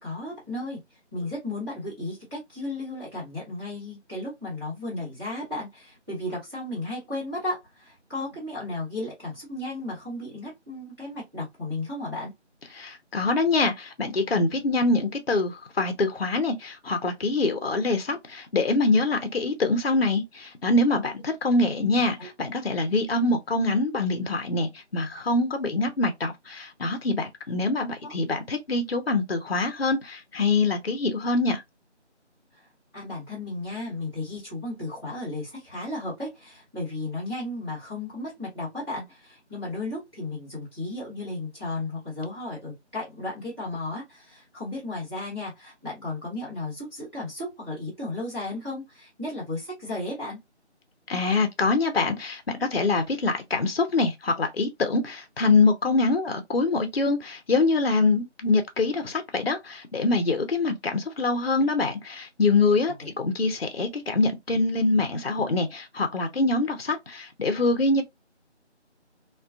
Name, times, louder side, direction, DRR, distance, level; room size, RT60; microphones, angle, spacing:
voice 1, 0.0-12.3 22.2-22.3 28.0-28.1 32.5-32.6 32.9-50.4, left 2 dB, 20° right, 1.2 m, -34 dB
voice 2, 12.8-31.6 51.1-68.0, left 3 dB, 55° left, 0.5 m, -24 dB
2.4 x 2.2 x 2.3 m
figure-of-eight pair, 175°, 35 cm